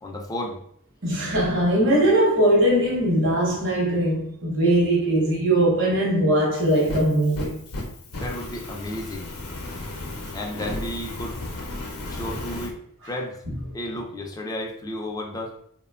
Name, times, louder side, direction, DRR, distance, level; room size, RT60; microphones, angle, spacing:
voice 1, 0.0-0.6 8.2-9.3 10.3-11.4 12.1-12.8 13.1-13.4 13.7-15.6, left 1 dB, 15° left, 0.3 m, -32 dB
voice 2, 1.0-7.6, right 1 dB, 55° right, 0.9 m, -20 dB
Fire, 6.6-12.7, left 2 dB, 75° left, 0.6 m, -34 dB
2.9 x 2.1 x 2.3 m
head